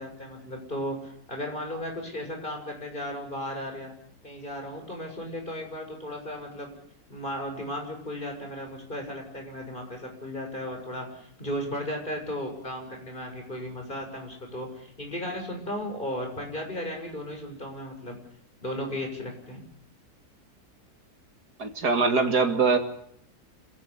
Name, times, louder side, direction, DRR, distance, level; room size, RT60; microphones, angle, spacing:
voice 1, 0.0-3.9 4.2-6.7 7.1-18.2 18.6-19.6, left 1 dB, 30° left, 2 dB, 7.1 m, -35 dB
voice 2, 21.6-22.8, right 4 dB, 70° right, 6 dB, 3.2 m, -22 dB
27.5 x 17.0 x 9.9 m, 0.67 s
omnidirectional pair, 1.7 m